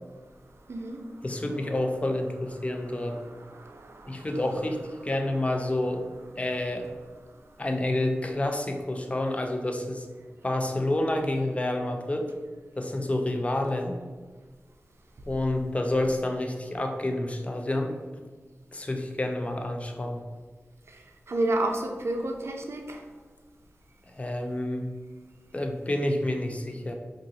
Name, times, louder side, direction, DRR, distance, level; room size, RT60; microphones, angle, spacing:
voice 1, 0.5-1.2 2.6-4.3 20.9-23.1, right 1 dB, 65° right, 3 dB, 0.4 m, -32 dB
voice 2, 1.2-3.2 4.1-6.1 6.4-6.9 7.6-10.1 10.4-12.3 12.8-14.0 15.3-17.9 18.7-20.3 24.1-24.9 25.5-26.9, left 1 dB, 25° left, 4 dB, 0.4 m, -29 dB
2.6 x 2.4 x 3.8 m, 1.4 s
cardioid pair, 50°, 5 cm